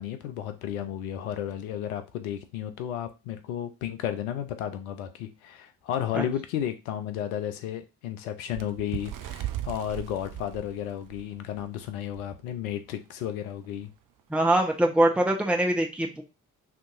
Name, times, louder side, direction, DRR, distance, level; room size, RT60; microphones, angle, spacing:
voice 1, 0.0-13.9, left 10 dB, 80° left, 0.7 m, -33 dB
Bird, 8.5-11.7 12.2-12.3 12.6-12.9 13.6-13.7, right 12 dB, 50° right, 0.6 m, -37 dB
voice 2, 14.3-16.2, right 1 dB, 5° right, 0.9 m, -23 dB
5.8 x 2.8 x 2.5 m
hypercardioid pair, 45°, 41 cm